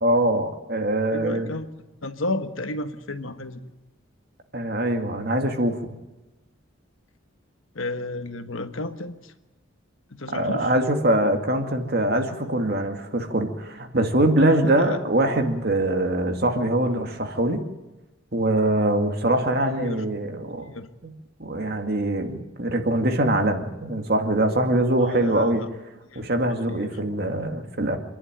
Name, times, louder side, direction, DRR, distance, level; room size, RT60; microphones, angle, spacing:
voice 1, 0.0-1.5 4.5-5.9 10.3-17.6 18.3-20.7 21.0-21.1 21.4-25.6 26.2-28.0, right 1 dB, 50° right, 5 dB, 2.2 m, -23 dB
voice 2, 1.1-1.7 2.0-3.6 7.7-9.3 10.1-10.7 14.4-15.0 19.7-20.0 20.7-20.9 25.0-25.7 26.1-26.2 26.7-26.9, left 2 dB, 80° left, 9 dB, 1.5 m, -32 dB
27.5 x 11.0 x 9.1 m, 1.1 s
head